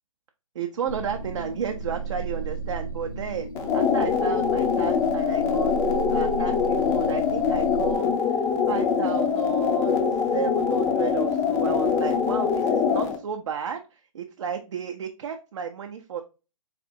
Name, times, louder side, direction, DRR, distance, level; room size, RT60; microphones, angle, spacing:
voice 1, 0.5-5.7 6.1-10.1 10.3-16.2, right 7 dB, 55° right, 4 dB, 0.5 m, -33 dB
sound 1, 0.9-8.0, right 4 dB, 80° left, 0.7 m, -35 dB
sound 2, 3.5-13.2, left 6 dB, 15° left, 0.4 m, -23 dB
4.2 x 2.6 x 2.6 m, 0.31 s
figure-of-eight pair, 135°, 18 cm